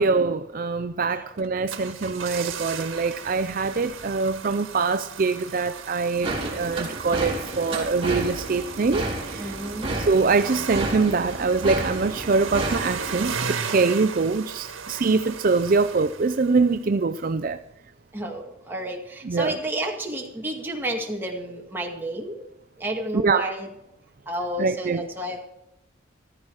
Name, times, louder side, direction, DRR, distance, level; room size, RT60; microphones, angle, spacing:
voice 1, 0.0-9.5 10.0-17.6 19.2-19.6 23.2-23.5 24.6-25.0, right 4 dB, 45° right, 10 dB, 0.5 m, -24 dB
sound 1, 1.4-16.9 17.2-17.3, right 6 dB, 85° right, 1.5 m, -36 dB
sound 2, 6.2-13.3, right 2 dB, 25° right, 3.2 m, -31 dB
voice 2, 9.4-9.9 18.1-22.5 22.8-23.7 24.3-25.4, right 1 dB, 10° right, 0 dB, 2.2 m, -31 dB
15.0 x 13.5 x 4.8 m, 0.83 s
head